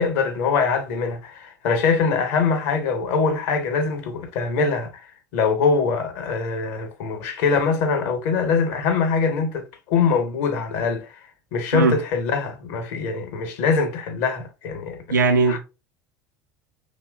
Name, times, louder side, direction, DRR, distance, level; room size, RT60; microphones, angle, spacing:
voice 1, 0.0-5.0 5.3-11.1 11.5-15.0 15.5-15.6, left 5 dB, 60° left, 0.7 m, -23 dB
voice 2, 15.1-15.6, right 4 dB, 85° right, 0.4 m, -18 dB
2.9 x 2.1 x 2.2 m
figure-of-eight pair, 70°, 10 cm